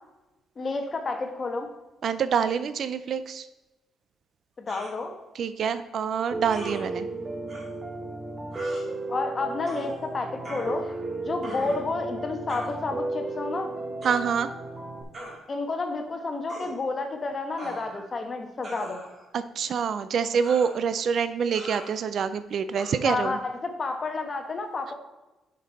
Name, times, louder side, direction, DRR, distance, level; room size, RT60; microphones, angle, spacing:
voice 1, 0.6-1.7 4.6-5.1 9.1-10.9 11.2-13.7 15.5-19.0 23.0-24.9, left 3 dB, 35° left, 5 dB, 1.2 m, -30 dB
voice 2, 2.0-3.5 5.3-7.1 14.0-14.5 19.3-23.4, right 7 dB, 60° right, 12 dB, 0.4 m, -26 dB
sound 1, 4.7-5.0 6.5-6.8 7.5-7.6 8.5-8.8 9.7-9.9 10.4-11.1 11.4-11.9 12.5-12.7 14.0-14.2 15.1-15.4 16.5-16.7 17.6-18.1 18.6-19.3 20.4-20.8 21.5-21.9 22.7-22.9, right 1 dB, 40° right, 2.5 m, -40 dB
Piano, 6.3-15.0, right 2 dB, 15° right, 1.1 m, -34 dB
6.3 x 5.4 x 4.1 m, 1.0 s
cardioid pair, 90°, 0 cm